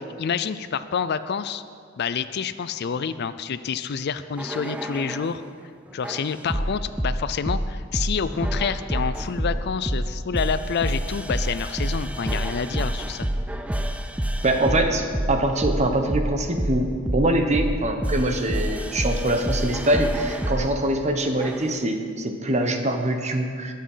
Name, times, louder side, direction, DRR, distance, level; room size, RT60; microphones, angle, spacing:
voice 1, 0.2-1.6 2.0-5.4 5.9-13.3, left 6 dB, 55° left, 13 dB, 0.4 m, -28 dB
sound 1, 4.4-5.4 6.0-20.7 21.4-21.8, right 1 dB, 5° right, 0.5 m, -27 dB
voice 2, 14.4-23.7, right 1 dB, 35° right, 5 dB, 1.2 m, -24 dB
21.0 x 7.5 x 5.7 m, 2.2 s
head